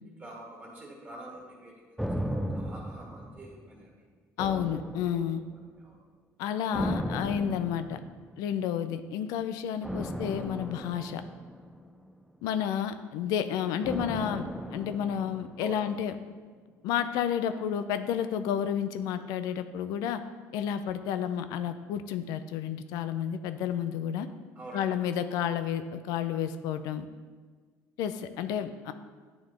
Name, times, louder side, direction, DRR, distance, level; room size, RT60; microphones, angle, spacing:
voice 1, 0.2-3.9 5.8-6.0 15.6-15.8 24.6-24.8, right 2 dB, 30° right, -2 dB, 1.8 m, -46 dB
sound 1, 2.0-3.9 4.4-5.6 6.7-8.4 9.8-12.2 13.8-16.0 16.3-16.4, equal, ahead, 0.3 m, -36 dB
voice 2, 4.4-5.4 6.4-8.0 8.4-11.2 12.4-16.2 16.8-20.2 20.5-24.3 24.7-27.1 28.0-28.9, left 9 dB, 75° left, 10 dB, 0.4 m, -31 dB
9.4 x 3.3 x 3.7 m, 1.5 s
cardioid pair, 105°, 6 cm